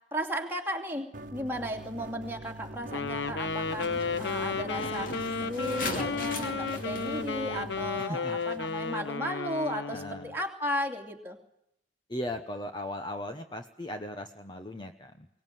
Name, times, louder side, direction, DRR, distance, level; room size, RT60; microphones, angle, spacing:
voice 1, 0.1-11.4, equal, 10° right, 1 dB, 2.8 m, -35 dB
sound 1, 1.1-8.0, right 1 dB, 40° right, 1.5 m, -43 dB
Wind instrument woodwind instrument, 2.9-10.3, left 4 dB, 65° left, 0.9 m, -33 dB
sound 2, 3.7-9.1, left 2 dB, 45° left, 2.7 m, -40 dB
voice 2, 8.0-8.4 9.9-10.3 12.1-15.3, left 1 dB, 25° left, 6 dB, 1.0 m, -38 dB
23.5 x 18.0 x 9.3 m, 0.80 s
head